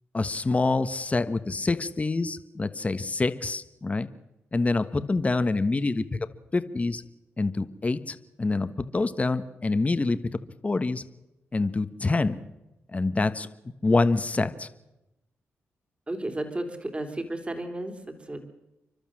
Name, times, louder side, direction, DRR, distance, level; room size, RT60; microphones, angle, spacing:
voice 1, 0.1-4.1 4.5-6.2 6.5-7.0 7.4-11.0 11.5-12.4 12.9-13.5 13.8-14.7, left 3 dB, 30° left, 11 dB, 1.3 m, -26 dB
voice 2, 16.1-18.5, right 1 dB, 25° right, 5 dB, 3.4 m, -34 dB
30.0 x 12.0 x 7.6 m, 0.94 s
cardioid pair, 70°, 5 cm